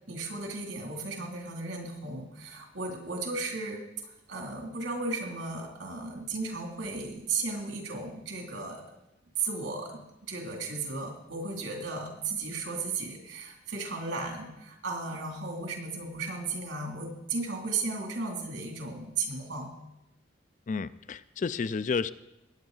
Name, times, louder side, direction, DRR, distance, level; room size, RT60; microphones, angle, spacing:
voice 1, 0.1-3.8 4.3-8.8 9.4-10.0 10.3-19.7, right 3 dB, 70° right, 1 dB, 2.8 m, -35 dB
voice 2, 20.7-22.1, left 5 dB, 40° left, 15 dB, 0.3 m, -31 dB
19.5 x 9.1 x 4.0 m, 0.93 s
head